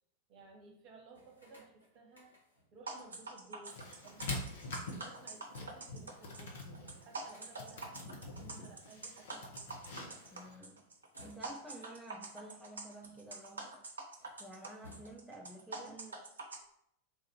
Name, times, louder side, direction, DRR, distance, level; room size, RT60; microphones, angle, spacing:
voice 1, 0.3-2.3 2.7-9.8 15.8-16.2, right 3 dB, 40° right, 2 dB, 0.9 m, -57 dB
sound 1, 1.1-2.8 4.0-6.0 6.4-6.5 6.6-8.9 10.0-11.8 12.5-13.8 14.1-15.5, left 1 dB, 85° left, 1.2 m, -61 dB
sound 2, 2.9-16.6, right 3 dB, 70° right, 0.5 m, -46 dB
sound 3, 3.7-10.6, left 2 dB, 60° left, 0.9 m, -45 dB
voice 2, 10.3-10.8 11.2-13.8 14.4-15.9, right 1 dB, 5° right, -2 dB, 0.4 m, -51 dB
3.7 x 2.5 x 4.2 m, 0.71 s
figure-of-eight pair, 90°, 0 cm